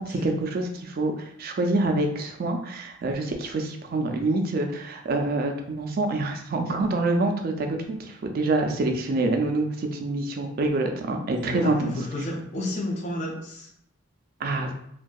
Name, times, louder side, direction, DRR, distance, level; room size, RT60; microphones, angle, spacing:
voice 1, 0.0-11.9 14.4-14.7, right 2 dB, 45° right, 4 dB, 0.3 m, -26 dB
voice 2, 11.5-13.7, left 1 dB, 35° left, -1 dB, 0.4 m, -31 dB
2.6 x 2.2 x 2.3 m, 0.70 s
head